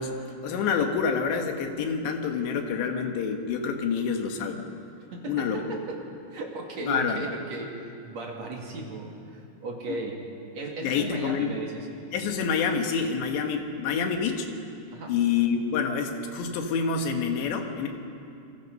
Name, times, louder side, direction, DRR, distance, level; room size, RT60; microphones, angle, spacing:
voice 1, 0.0-4.6 5.3-5.6 6.8-7.3 9.9-10.0 10.8-11.5 12.1-14.5 15.1-17.9, left 6 dB, 75° left, 4 dB, 3.7 m, -27 dB
voice 2, 5.1-6.0 6.3-10.2 10.5-11.9 14.9-15.1, right 3 dB, 45° right, 0 dB, 3.0 m, -36 dB
29.0 x 22.0 x 5.5 m, 2.5 s
omnidirectional pair, 5.2 m